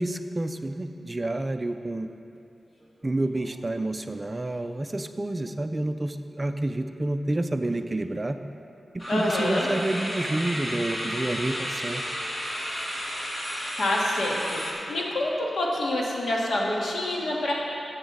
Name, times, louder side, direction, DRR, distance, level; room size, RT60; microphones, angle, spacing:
voice 1, 0.0-2.1 3.0-8.4 8.9-12.0, right 2 dB, 25° right, 8 dB, 0.4 m, -29 dB
sound 1, 2.8-3.1 3.4-3.6 4.0-4.1 9.0-14.7, equal, 35° left, 2.1 m, -33 dB
voice 2, 9.1-9.7 13.8-14.6 14.9-17.5, left 1 dB, 75° left, -3 dB, 1.7 m, -26 dB
15.0 x 7.2 x 3.9 m, 2.8 s
wide cardioid pair, 105°, 0 cm